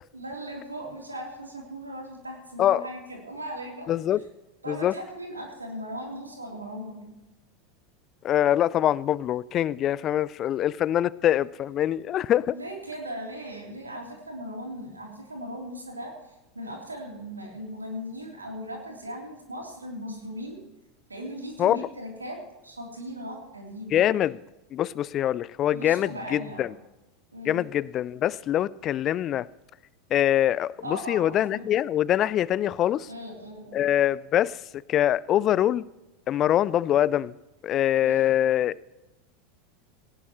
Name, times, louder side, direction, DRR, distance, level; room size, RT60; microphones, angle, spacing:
voice 1, 0.1-3.9 4.6-7.1 12.5-16.1 16.5-20.6 21.1-22.4 22.6-24.0 25.7-26.7 27.3-27.6 30.8-31.7 33.1-33.9 37.9-38.3, equal, 85° right, 3.5 m, -38 dB
voice 2, 3.9-4.2 4.7-4.9 8.2-12.6 21.6-21.8 23.9-24.4 24.7-26.7 27.5-29.5 30.1-33.1 33.7-34.6 34.9-35.9 36.3-37.3 37.6-38.8, left 11 dB, 35° left, 0.4 m, -24 dB
18.0 x 17.0 x 3.1 m
figure-of-eight pair, 85°, 0 cm